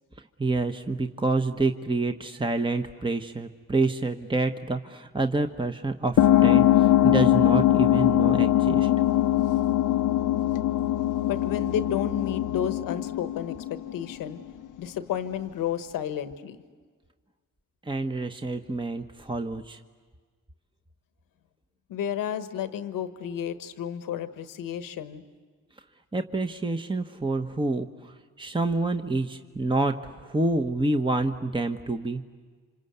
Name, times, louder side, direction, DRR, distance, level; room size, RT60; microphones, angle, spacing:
voice 1, 0.4-8.9 17.8-19.8 26.1-28.1 28.4-32.2, right 2 dB, 15° right, 6 dB, 1.2 m, -28 dB
sound 1, 6.2-14.3, left 12 dB, 70° left, 0.7 m, -22 dB
voice 2, 11.3-14.4 14.8-16.6 21.9-25.2, left 9 dB, 90° left, 11 dB, 1.2 m, -31 dB
27.5 x 26.0 x 8.2 m, 1.5 s
supercardioid pair, 45°, 32 cm